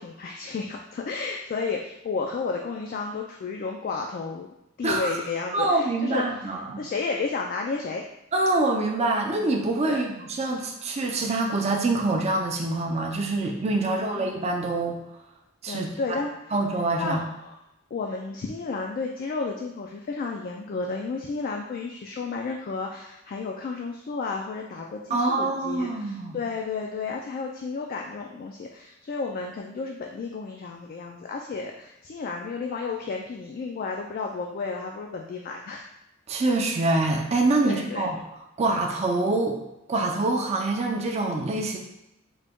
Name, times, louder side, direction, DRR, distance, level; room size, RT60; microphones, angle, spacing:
voice 1, 0.0-4.5 4.8-8.0 9.8-10.1 13.8-14.3 15.7-16.5 17.0-17.6 17.9-35.9 37.6-38.1, left 4 dB, 45° left, 1 dB, 0.3 m, -32 dB
voice 2, 5.5-6.8 8.3-15.0 15.6-15.9 16.5-17.2 25.1-26.4 36.3-38.2 38.6-39.6 39.9-41.8, right 2 dB, 35° right, 1 dB, 0.4 m, -25 dB
3.8 x 2.2 x 3.5 m, 0.89 s
head